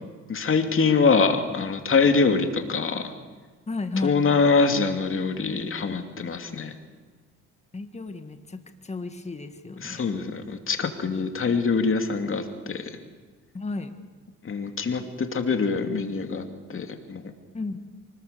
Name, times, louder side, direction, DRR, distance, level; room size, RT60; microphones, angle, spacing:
voice 1, 0.3-3.1 4.0-6.7 9.8-12.9 14.4-16.4 16.7-17.2, left 4 dB, 45° left, 6 dB, 2.7 m, -24 dB
voice 2, 3.7-4.2 7.7-10.0 13.5-13.9 17.5-17.8, left 3 dB, 20° left, 8 dB, 1.9 m, -33 dB
25.0 x 20.0 x 7.0 m, 1.4 s
cardioid pair, 90°, 30 cm